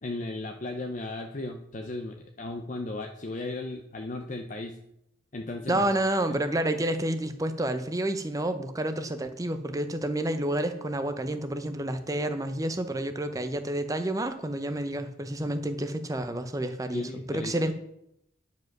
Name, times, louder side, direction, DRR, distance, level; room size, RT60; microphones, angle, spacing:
voice 1, 0.0-4.8 5.3-5.9 16.9-17.5, left 2 dB, 40° left, 4 dB, 0.6 m, -36 dB
voice 2, 5.7-17.7, right 1 dB, 15° right, 8 dB, 0.7 m, -29 dB
9.9 x 5.3 x 6.0 m, 0.78 s
head